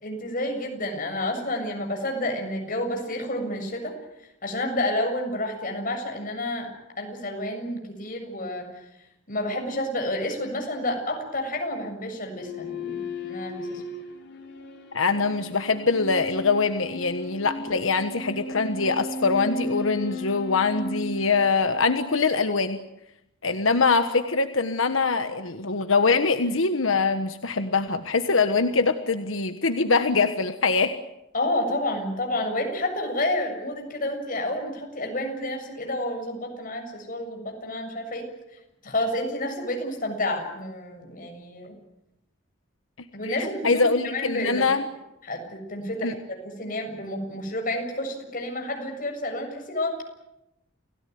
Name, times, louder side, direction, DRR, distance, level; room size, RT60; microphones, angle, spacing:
voice 1, 0.0-3.9 4.4-6.7 7.0-8.7 9.3-13.8 31.3-38.3 38.8-41.7 43.1-44.6 45.2-46.1 46.4-50.0, left 1 dB, 45° left, 3 dB, 7.3 m, -30 dB
sound 1, 12.3-21.9, left 2 dB, 60° left, 4.6 m, -35 dB
voice 2, 14.9-22.8 23.4-30.9 43.2-44.8 46.0-46.1, left 4 dB, 90° left, 8 dB, 1.4 m, -23 dB
29.0 x 17.0 x 9.5 m, 0.88 s
head